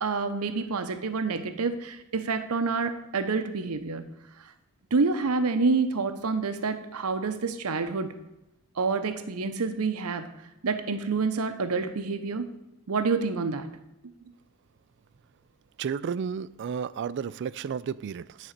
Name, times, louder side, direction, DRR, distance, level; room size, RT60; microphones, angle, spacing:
voice 1, 0.0-4.1 4.4-4.5 4.9-8.1 8.8-10.3 10.6-12.5 12.9-13.7, right 4 dB, 85° right, 0.7 m, -28 dB
voice 2, 15.8-18.5, right 7 dB, 55° right, 0.3 m, -32 dB
10.0 x 4.2 x 6.5 m
head